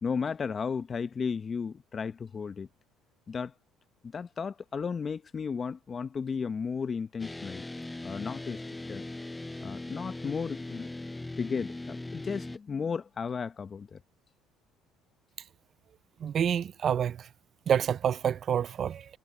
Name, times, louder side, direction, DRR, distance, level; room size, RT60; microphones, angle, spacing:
voice 1, 0.0-2.7 3.3-3.5 4.0-7.6 8.0-8.6 8.9-9.1 9.6-10.9 11.4-14.0, left 5 dB, 35° left, 0.8 m, -34 dB
sound 1, 7.2-12.6, left 2 dB, 10° left, 0.5 m, -40 dB
voice 2, 16.2-17.2 17.7-19.0, right 8 dB, 50° right, 0.4 m, -27 dB
supercardioid pair, 90°, 0 cm